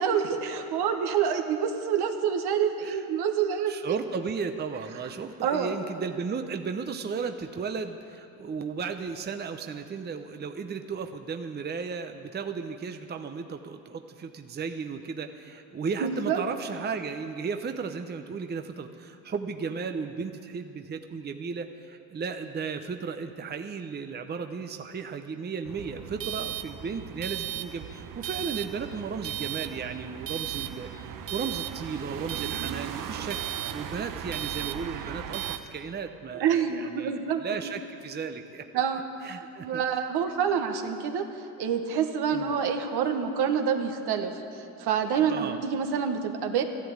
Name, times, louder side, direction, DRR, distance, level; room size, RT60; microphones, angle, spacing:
voice 1, 0.0-3.7 5.4-5.7 16.0-16.4 36.4-37.7 38.7-46.6, right 7 dB, 70° right, 5 dB, 1.6 m, -27 dB
voice 2, 3.7-38.6 39.2-39.8 42.3-42.5 45.3-45.6, right 5 dB, 25° right, 7 dB, 0.8 m, -35 dB
sound 1, 25.7-35.6, right 10 dB, 50° right, 0.9 m, -36 dB
13.5 x 11.5 x 8.6 m, 2.7 s
supercardioid pair, 90°, 41 cm